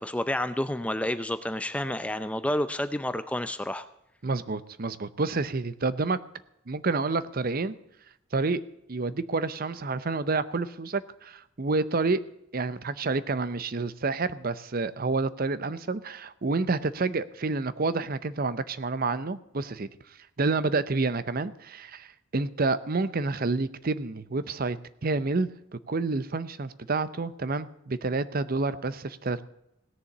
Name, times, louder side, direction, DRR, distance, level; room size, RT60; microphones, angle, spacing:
voice 1, 0.0-3.9, left 1 dB, 5° left, 12 dB, 0.5 m, -29 dB
voice 2, 4.2-6.2 6.7-7.7 8.3-8.6 8.9-12.2 12.5-19.9 20.4-24.8 25.0-25.5 25.9-29.4, right 3 dB, 45° right, 15 dB, 0.6 m, -29 dB
17.0 x 7.0 x 8.3 m, 0.81 s
head